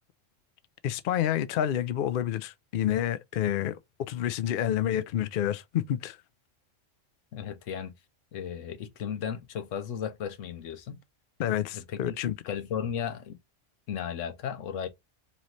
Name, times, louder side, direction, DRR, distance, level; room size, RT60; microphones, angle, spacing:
voice 1, 0.8-3.8 4.1-6.2 11.4-12.3, left 11 dB, 60° left, 0.6 m, -28 dB
voice 2, 7.3-7.9 8.3-11.0 11.7-12.1 12.4-13.4 13.9-14.9, left 8 dB, 85° left, 1.0 m, -35 dB
3.1 x 3.0 x 3.9 m
omnidirectional pair, 1.3 m